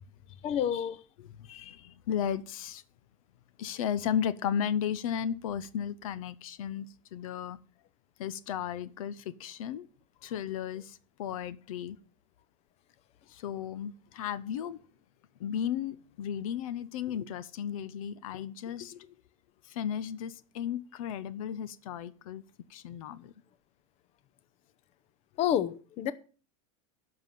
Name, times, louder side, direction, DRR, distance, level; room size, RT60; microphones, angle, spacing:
voice 1, 0.4-1.0 1.5-1.8 25.4-26.1, left 10 dB, 35° left, 0.7 m, -29 dB
voice 2, 1.2-2.8 3.6-7.6 8.2-9.9 10.2-12.0 13.3-14.8 15.4-19.1 19.6-22.4 22.7-23.3, left 9 dB, 75° left, 0.8 m, -35 dB
11.0 x 5.9 x 7.5 m
supercardioid pair, 130°, 18 cm